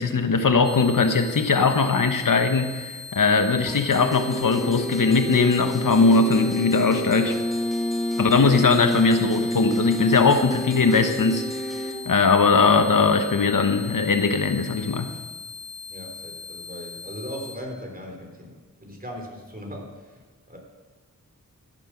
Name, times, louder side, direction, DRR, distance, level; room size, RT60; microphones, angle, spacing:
voice 1, 0.0-7.4 8.2-15.1, left 4 dB, 75° left, 7 dB, 1.2 m, -20 dB
sound 1, 0.6-17.6, left 5 dB, 50° left, 1.5 m, -40 dB
sound 2, 3.6-11.9, equal, ahead, 2.4 m, -29 dB
voice 2, 15.9-20.2 20.5-20.6, equal, 25° right, 1 dB, 3.9 m, -38 dB
15.0 x 9.0 x 6.1 m, 1.4 s
wide cardioid pair, 60°, 32 cm